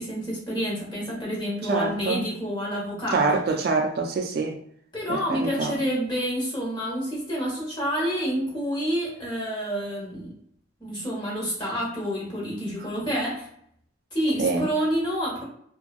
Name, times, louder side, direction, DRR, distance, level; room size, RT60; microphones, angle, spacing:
voice 1, 0.0-3.4 4.9-10.3 10.8-13.5 14.1-15.4, equal, 20° left, 1.0 m, -28 dB
voice 2, 1.7-2.2 3.1-4.6 5.1-5.7 14.4-14.7, right 4 dB, 50° right, 0.3 m, -25 dB
2.8 x 2.3 x 2.3 m
head